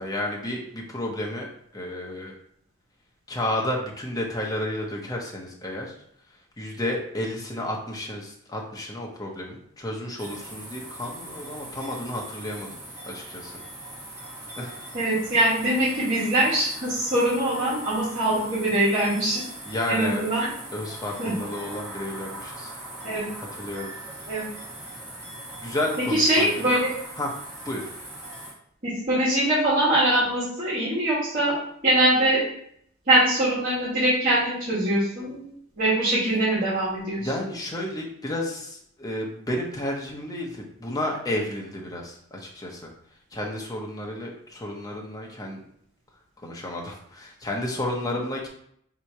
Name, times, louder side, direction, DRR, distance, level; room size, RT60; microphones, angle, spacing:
voice 1, 0.0-2.3 3.3-6.0 6.3-12.8 13.1-13.6 14.6-14.8 19.7-20.2 20.7-22.7 23.6-23.9 25.6-26.5 27.2-27.3 27.6-27.9 37.2-42.9 43.3-45.6 46.4-48.5, left 1 dB, 20° left, -1 dB, 0.8 m, -31 dB
sound 1, 10.2-28.5, right 1 dB, 15° right, 1.4 m, -40 dB
voice 2, 14.9-19.4 19.9-20.5 21.2-21.3 23.0-23.3 24.3-24.5 26.1-26.9 28.8-31.5 31.8-32.5 33.1-35.5 35.8-37.3, right 1 dB, 40° right, -9 dB, 1.7 m, -23 dB
3.7 x 2.9 x 4.6 m, 0.69 s
head